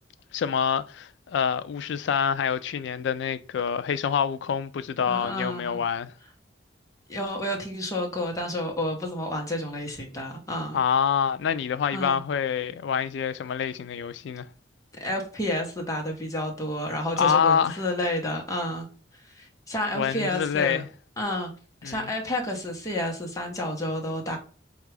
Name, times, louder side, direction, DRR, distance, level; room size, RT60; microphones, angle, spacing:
voice 1, 0.3-6.1 10.7-14.5 17.2-17.8 19.9-20.9 21.8-22.1, left 7 dB, 70° left, 0.3 m, -26 dB
voice 2, 5.1-5.8 7.1-10.8 11.9-12.2 15.0-18.9 19.2-20.8 21.2-21.5 21.8-24.4, left 1 dB, 20° left, 1.0 m, -30 dB
4.4 x 2.4 x 3.2 m
head